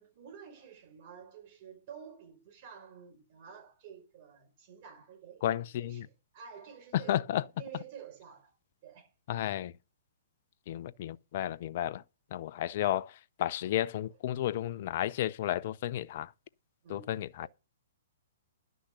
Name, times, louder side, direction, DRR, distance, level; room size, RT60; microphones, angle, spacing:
voice 1, 0.0-8.6 8.8-9.1 16.8-17.1 17.4-17.5, right 7 dB, 45° right, 5.4 m, -50 dB
voice 2, 5.4-6.1 6.9-7.4 9.3-9.7 10.7-12.0 12.3-16.3 16.9-17.5, left 12 dB, 50° left, 0.5 m, -32 dB
11.5 x 6.2 x 6.6 m
hypercardioid pair, 125°, 0 cm